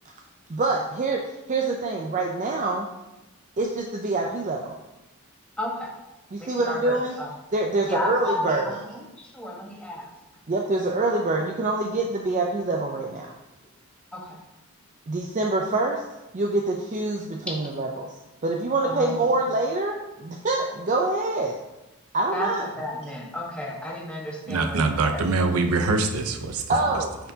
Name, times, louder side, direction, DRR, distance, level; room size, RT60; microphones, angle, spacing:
voice 1, 0.5-2.9 3.6-4.8 6.3-7.1 7.5-8.7 10.5-13.3 15.1-16.0 16.3-18.1 18.4-21.6 22.1-22.7 26.7-27.2, right 2 dB, 35° right, 1 dB, 0.5 m, -25 dB
voice 2, 5.6-5.9 6.4-7.3 7.9-10.1 14.1-14.4 18.8-19.3 22.3-22.5 22.8-24.8 25.1-25.2, left 1 dB, 5° left, -3 dB, 1.2 m, -33 dB
voice 3, 24.5-26.6, right 3 dB, 90° right, 6 dB, 0.6 m, -23 dB
9.0 x 4.5 x 2.8 m, 0.98 s
head